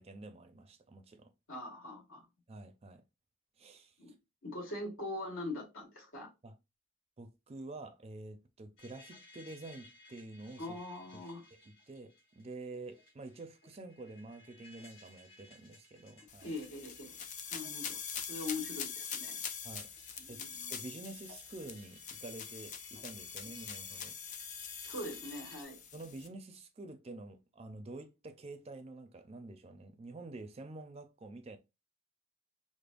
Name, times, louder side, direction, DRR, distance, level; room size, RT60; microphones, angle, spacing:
voice 1, 0.0-1.3 2.5-3.0 3.6-3.9 6.4-6.6 7.2-10.8 11.1-16.5 19.6-19.9 20.3-20.4 20.7-24.2 25.9-31.6, right 2 dB, 30° right, 0.4 m, -48 dB
voice 2, 1.5-2.3 4.0-4.1 4.4-6.3 10.6-11.4 16.4-17.2 17.5-18.0 18.3-19.4 20.2-20.7 24.8-25.8, left 2 dB, 80° left, 1.6 m, -42 dB
sound 1, 8.8-25.6, left 2 dB, 65° left, 1.9 m, -60 dB
sound 2, 16.3-26.3, left 7 dB, 35° left, 0.4 m, -44 dB
5.0 x 2.0 x 2.4 m
head